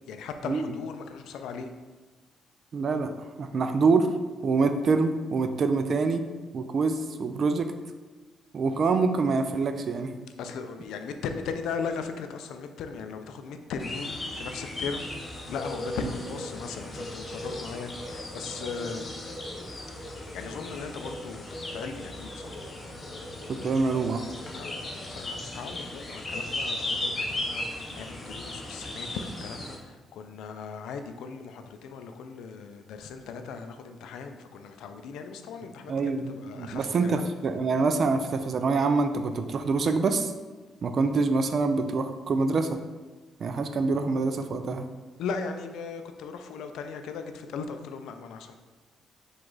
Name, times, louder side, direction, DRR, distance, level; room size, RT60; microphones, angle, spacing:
voice 1, 0.1-1.7 10.4-15.1 15.5-19.2 20.0-22.6 24.5-37.2 45.2-48.5, left 5 dB, 80° left, 7 dB, 0.4 m, -38 dB
voice 2, 2.7-3.1 3.4-4.1 4.4-6.2 6.5-7.7 8.5-10.1 23.6-24.2 35.9-36.3 36.6-40.3 40.8-42.8 43.4-44.9, right 4 dB, 50° right, 8 dB, 0.3 m, -25 dB
sound 1, 13.8-29.8, left 1 dB, 30° left, 0.8 m, -36 dB
4.8 x 2.4 x 3.9 m, 1.3 s
cardioid pair, 90°, 0 cm